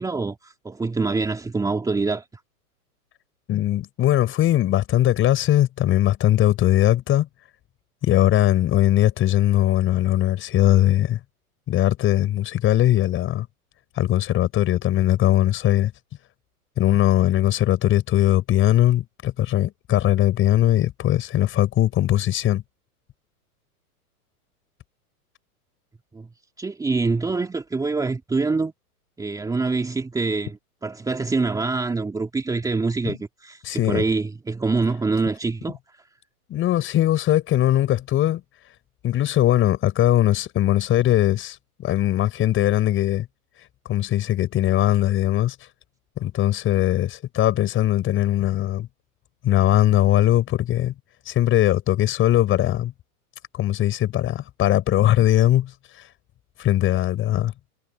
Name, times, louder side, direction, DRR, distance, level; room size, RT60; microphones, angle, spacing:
voice 1, 0.0-2.2 26.1-26.3 26.6-28.7 29.2-35.8, right 3 dB, 10° right, 2.6 m, -25 dB
voice 2, 3.5-7.3 8.0-11.2 11.7-13.5 14.0-15.9 16.8-22.6 33.1-33.2 33.6-34.0 36.5-38.4 39.0-41.6 41.8-43.3 43.9-45.6 46.2-48.9 49.4-50.9 51.3-52.9 53.5-55.7 56.6-57.5, left 13 dB, 25° left, 5.6 m, -20 dB
hypercardioid pair, 135°, 45 cm